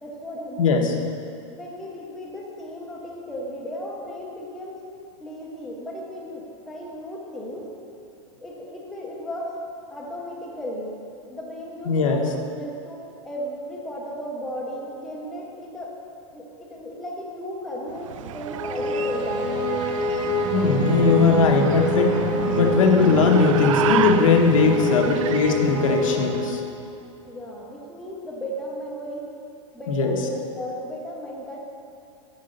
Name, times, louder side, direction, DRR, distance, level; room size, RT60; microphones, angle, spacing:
voice 1, 0.0-0.6 1.5-4.8 5.2-7.7 8.4-9.5 9.9-11.0 11.3-16.0 16.3-19.5 27.3-29.3 29.7-31.6, equal, ahead, -3 dB, 0.4 m, -35 dB
voice 2, 0.6-0.9 11.9-12.2 20.5-22.2 22.5-26.6 29.9-30.2, left 4 dB, 80° left, 2 dB, 1.0 m, -19 dB
sound 1, 17.9-26.5, right 9 dB, 75° right, 0.4 m, -32 dB
sound 2, 18.4-26.9, left 1 dB, 25° right, 0.8 m, -25 dB
8.3 x 3.9 x 6.5 m, 2.7 s
supercardioid pair, 175°, 17 cm